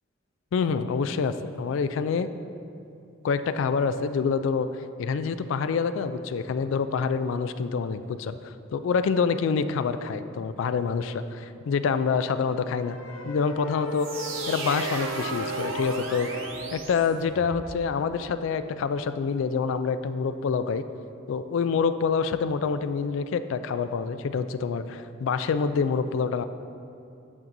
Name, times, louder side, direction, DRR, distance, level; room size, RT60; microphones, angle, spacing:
voice 1, 0.5-2.3 3.2-4.7 5.0-13.0 13.2-14.1 14.5-16.4 16.7-20.8 21.3-26.5, left 5 dB, 65° left, 11 dB, 0.3 m, -26 dB
sound 1, 12.8-16.8, right 1 dB, 80° left, 0.8 m, -35 dB
sound 2, 13.9-17.7, right 4 dB, 75° right, 0.7 m, -36 dB
8.4 x 7.2 x 2.6 m, 2.6 s
head